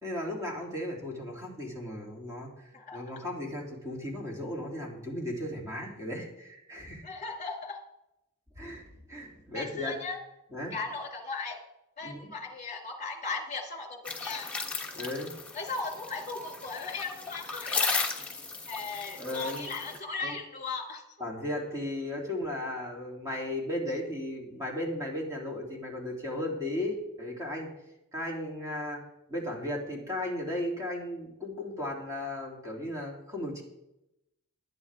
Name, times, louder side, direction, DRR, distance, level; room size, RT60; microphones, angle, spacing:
voice 1, 0.0-7.1 8.6-9.9 10.5-10.7 12.0-12.3 14.9-15.3 19.2-19.7 20.2-20.4 21.2-27.7 28.1-29.0 29.3-33.6, left 1 dB, 15° right, -2 dB, 3.0 m, -36 dB
voice 2, 2.7-3.2 7.0-7.8 9.5-10.2 10.7-11.6 12.0-14.5 15.5-18.1 18.7-21.0, left 4 dB, 35° left, 3 dB, 2.4 m, -37 dB
sound 1, 14.0-20.0, left 4 dB, 5° left, 1.4 m, -35 dB
21.0 x 9.2 x 3.6 m, 0.87 s
head